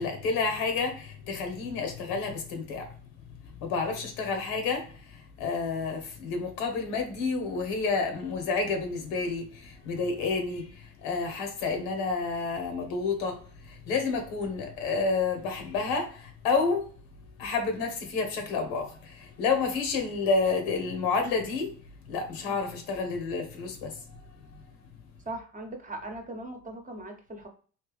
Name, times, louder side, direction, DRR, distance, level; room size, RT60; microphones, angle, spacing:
voice 1, 0.0-2.9 3.6-16.9 17.4-21.7 22.1-24.2, left 4 dB, 85° left, 1.1 m, -30 dB
voice 2, 25.3-27.5, right 2 dB, 20° right, 0.9 m, -39 dB
3.3 x 2.8 x 3.3 m
supercardioid pair, 75°, 36 cm